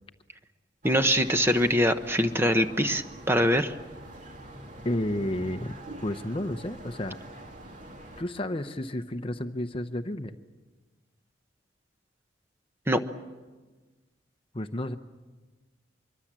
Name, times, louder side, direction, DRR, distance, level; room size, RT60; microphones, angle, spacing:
voice 1, 0.8-3.7 12.9-13.0, equal, 10° right, 8 dB, 0.9 m, -23 dB
sound 1, 0.8-8.2, right 1 dB, 40° right, 2.8 m, -45 dB
voice 2, 4.8-5.7 6.0-7.2 8.2-10.3 14.5-15.0, left 1 dB, 30° left, 9 dB, 0.8 m, -31 dB
25.0 x 23.0 x 7.5 m, 1.3 s
head